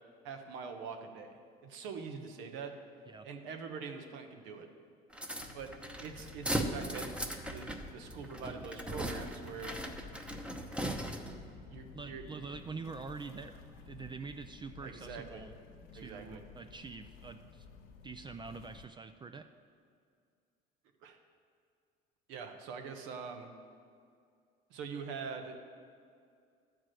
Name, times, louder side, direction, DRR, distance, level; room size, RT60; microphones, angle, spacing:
voice 1, 0.2-2.7 3.2-4.7 5.5-5.7 6.0-7.1 7.5-9.7 11.7-12.2 14.8-15.4 15.9-16.4 21.0-21.2 22.3-23.5 24.7-25.7, right 5 dB, 80° right, 5 dB, 1.1 m, -44 dB
sound 1, 5.1-11.5, right 1 dB, 5° right, 0.9 m, -38 dB
sound 2, 5.4-18.9, left 5 dB, 75° left, 1.0 m, -53 dB
voice 2, 11.9-15.6 15.9-17.7 18.0-19.5, right 4 dB, 25° right, 8 dB, 0.4 m, -45 dB
11.0 x 4.8 x 7.6 m, 2.3 s
supercardioid pair, 90°, 20 cm